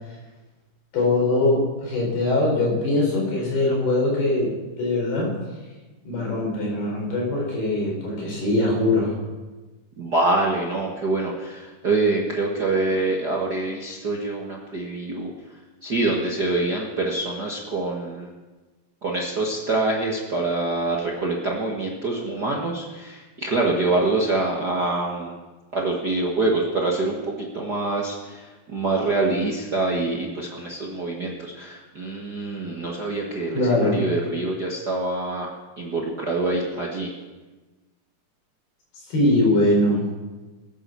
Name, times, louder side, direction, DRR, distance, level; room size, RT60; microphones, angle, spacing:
voice 1, 0.9-5.3 6.1-9.1 33.5-34.1 39.1-40.0, left 2 dB, 85° left, -2 dB, 6.9 m, -22 dB
voice 2, 10.0-15.3 15.8-18.3 19.0-25.3 25.7-28.4 28.7-33.6 33.9-35.5 35.8-37.1, right 2 dB, 45° right, -2 dB, 1.2 m, -25 dB
20.0 x 9.7 x 7.0 m, 1.2 s
omnidirectional pair, 4.4 m